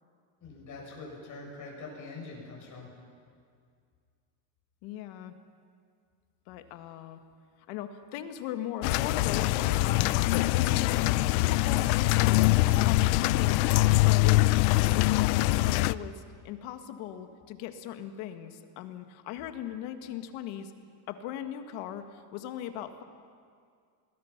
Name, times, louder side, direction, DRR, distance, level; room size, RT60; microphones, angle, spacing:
voice 1, 0.4-2.9, left 3 dB, 40° left, -2 dB, 7.9 m, -44 dB
voice 2, 4.8-5.3 6.5-7.2 7.7-13.6 13.9-14.4 14.8-20.7 21.1-23.0, left 10 dB, 70° left, 8 dB, 1.8 m, -39 dB
sound 1, 8.8-15.9, left 18 dB, 90° left, 0.7 m, -23 dB
27.0 x 20.0 x 6.0 m, 2.2 s
cardioid pair, 140°, 48 cm